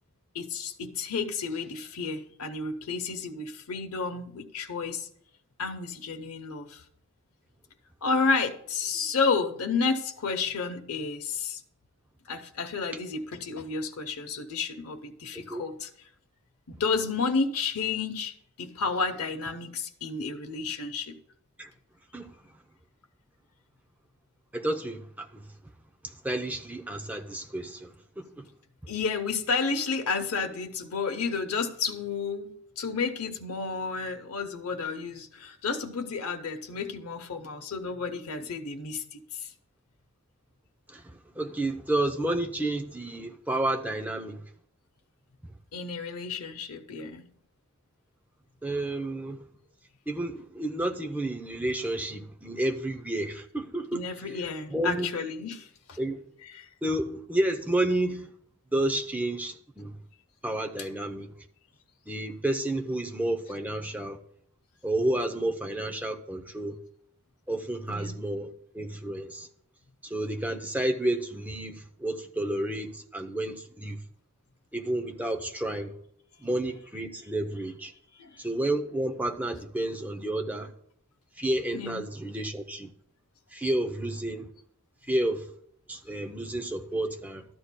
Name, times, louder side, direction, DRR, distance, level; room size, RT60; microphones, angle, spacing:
voice 1, 0.3-5.1 5.6-6.8 8.0-11.6 12.3-15.9 16.7-21.2 28.9-39.5 45.7-47.2 53.9-56.0 56.5-56.7 67.9-68.2 78.1-78.5 81.7-82.1, left 4 dB, 85° left, 0.7 m, -31 dB
voice 2, 24.5-25.5 26.0-28.5 40.9-44.4 48.6-49.5 50.1-54.1 54.7-55.1 56.0-56.2 56.8-58.3 58.7-60.0 60.4-61.3 62.1-64.2 64.8-66.8 67.5-69.5 70.0-74.0 74.7-75.9 76.4-77.9 78.4-80.7 81.4-82.9 83.5-84.5 85.1-85.5 85.9-87.5, right 1 dB, 5° right, 0.6 m, -31 dB
13.0 x 9.7 x 2.2 m
head